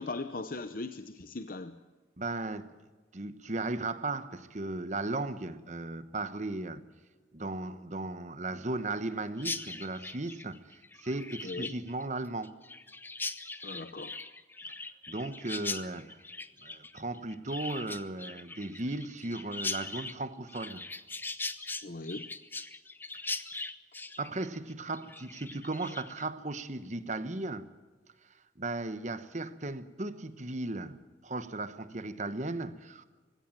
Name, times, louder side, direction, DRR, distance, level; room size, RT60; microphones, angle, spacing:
voice 1, 0.0-1.8 11.4-11.7 13.6-14.2 21.8-22.3, left 3 dB, 45° left, 0.8 m, -39 dB
voice 2, 2.2-2.7 3.1-6.8 7.3-12.6 15.1-16.2 16.6-20.8 23.2-23.4 24.2-27.7 28.6-33.0, right 2 dB, 40° right, 1.1 m, -36 dB
Chirp tweet, 9.4-26.3, left 3 dB, 10° left, 0.7 m, -40 dB
20.5 x 16.5 x 8.9 m
head